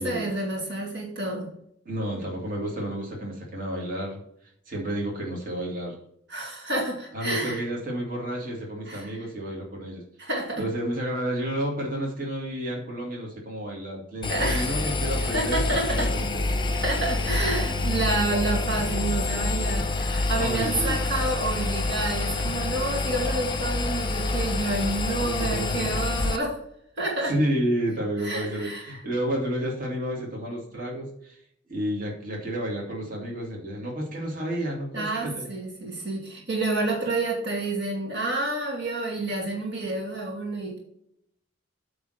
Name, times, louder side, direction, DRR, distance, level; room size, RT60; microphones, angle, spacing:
voice 1, 0.0-1.5 6.3-7.6 8.9-9.3 10.2-10.6 14.3-14.9 15.3-16.1 16.8-26.6 27.0-27.3 28.2-29.0 34.9-40.8, right 2 dB, 60° right, -1 dB, 2.3 m, -29 dB
voice 2, 1.9-4.2 4.7-6.0 7.1-10.0 10.6-16.4 18.7-18.9 20.4-21.0 25.2-26.1 27.2-31.4 31.7-35.5, right 1 dB, 45° right, -2 dB, 2.4 m, -31 dB
Engine, 14.2-26.4, left 2 dB, 25° left, 0.8 m, -27 dB
8.8 x 3.6 x 6.4 m, 0.71 s
head